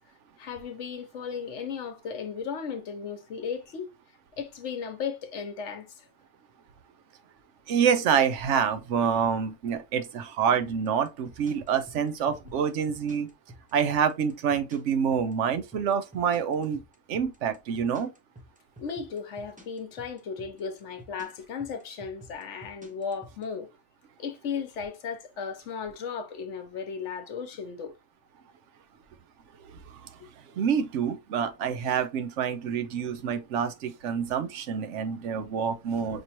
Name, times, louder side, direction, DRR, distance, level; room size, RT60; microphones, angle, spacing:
voice 1, 0.4-3.9 4.4-6.1 18.8-23.7 24.2-27.9 30.2-30.3, left 6 dB, 70° left, 1.1 m, -35 dB
voice 2, 7.7-13.3 13.7-16.8 17.1-18.1 29.6-30.1 30.6-36.2, right 7 dB, 70° right, 1.0 m, -27 dB
sound 1, 10.7-23.4, right 1 dB, 10° right, 0.7 m, -49 dB
5.1 x 3.0 x 2.8 m
omnidirectional pair, 1.3 m